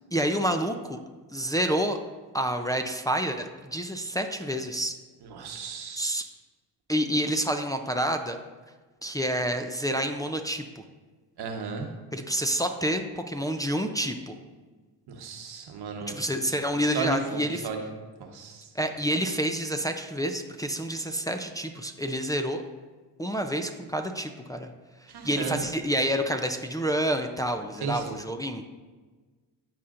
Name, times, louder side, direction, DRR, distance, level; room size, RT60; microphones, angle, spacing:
voice 1, 0.1-1.0 1.3-2.0 2.3-4.9 6.0-6.2 6.9-8.4 9.0-10.8 12.1-14.3 16.2-17.7 18.7-22.6 23.2-24.7 25.0-28.6, equal, 10° left, 4 dB, 0.5 m, -28 dB
voice 2, 5.2-6.2 11.4-11.9 15.1-16.2 16.9-17.9 18.2-18.7 25.1-25.6 27.8-28.2, right 4 dB, 70° right, 3 dB, 1.1 m, -34 dB
12.5 x 4.3 x 2.6 m, 1.3 s
supercardioid pair, 60°, 40 cm